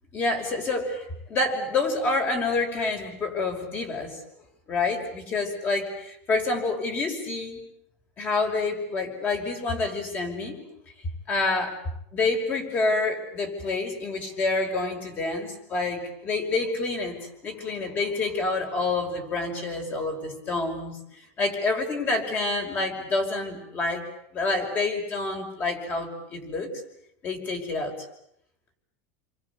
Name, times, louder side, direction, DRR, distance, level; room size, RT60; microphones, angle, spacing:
voice 1, 0.1-4.2 4.7-7.6 8.2-10.6 11.3-11.7 12.1-17.2 17.4-24.0 24.3-26.7 27.2-28.0, left 3 dB, 25° left, 4 dB, 5.5 m, -28 dB
30.0 x 23.5 x 8.4 m, 0.73 s
supercardioid pair, 160°, 8 cm